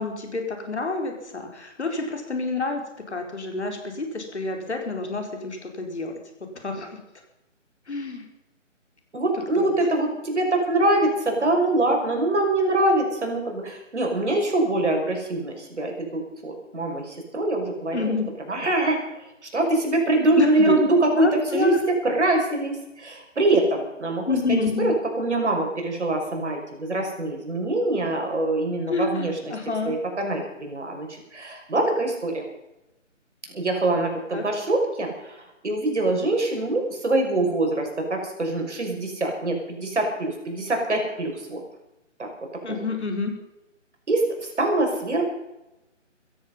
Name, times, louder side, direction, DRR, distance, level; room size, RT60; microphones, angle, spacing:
voice 1, 0.0-2.8 3.1-6.1 6.6-6.9 7.9-8.2 9.5-9.7 17.9-18.3 20.4-20.8 21.2-21.8 24.3-24.9 28.9-30.0 34.3-34.4 42.6-43.3, left 3 dB, 60° left, 4 dB, 4.5 m, -28 dB
voice 2, 9.1-18.2 18.5-19.3 19.5-21.8 22.0-24.4 24.8-29.5 29.8-32.4 33.5-41.6 42.2-42.3 42.7-42.8 44.1-45.2, right 2 dB, 65° right, 2 dB, 5.9 m, -24 dB
16.5 x 15.0 x 5.5 m, 0.95 s
figure-of-eight pair, 150°, 38 cm